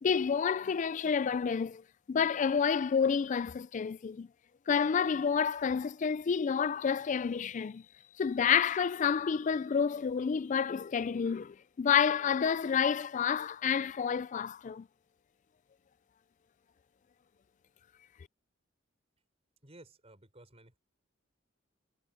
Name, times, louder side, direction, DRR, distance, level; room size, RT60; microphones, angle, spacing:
voice 1, 0.0-4.3 4.7-7.8 8.2-14.9, left 7 dB, 40° left, 0.3 m, -29 dB
voice 2, 19.6-20.8, right 1 dB, 30° right, 5.2 m, -55 dB
head